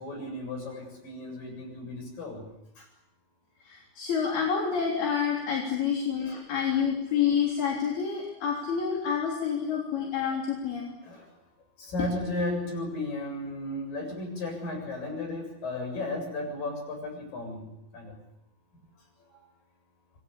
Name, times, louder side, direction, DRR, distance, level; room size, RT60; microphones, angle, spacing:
voice 1, 0.0-2.4 2.8-2.9 6.3-6.5 10.3-10.4 11.0-11.3 11.8-17.7 17.9-18.2, left 2 dB, 60° left, 4 dB, 9.1 m, -34 dB
voice 2, 3.7-10.9, left 7 dB, 75° left, -1 dB, 5.5 m, -28 dB
26.5 x 21.5 x 8.5 m, 0.86 s
omnidirectional pair, 4.4 m